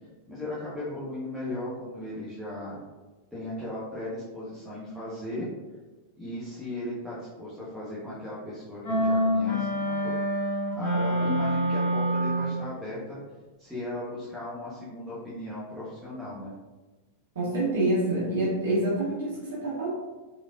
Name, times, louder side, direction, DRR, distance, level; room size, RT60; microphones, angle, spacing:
voice 1, 0.3-2.8 3.3-5.5 6.2-10.2 10.7-13.2 13.6-16.5, left 1 dB, 5° right, -9 dB, 0.7 m, -36 dB
sound 1, 8.8-12.7, equal, 65° left, 0.9 m, -26 dB
voice 2, 17.3-19.9, right 1 dB, 60° right, -8 dB, 0.8 m, -27 dB
3.3 x 2.4 x 2.2 m, 1.2 s
figure-of-eight pair, 90°, 0 cm